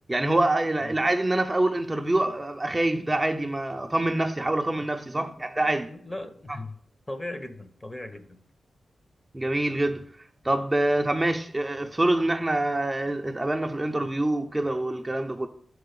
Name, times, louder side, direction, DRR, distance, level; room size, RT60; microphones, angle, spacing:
voice 1, 0.1-5.9 6.5-6.6 9.3-10.1 10.4-15.5, right 1 dB, 20° right, 0.5 m, -25 dB
voice 2, 5.2-6.8 7.1-8.4, left 1 dB, 25° left, 0.9 m, -39 dB
6.1 x 4.6 x 6.6 m
cardioid pair, 80°, 0 cm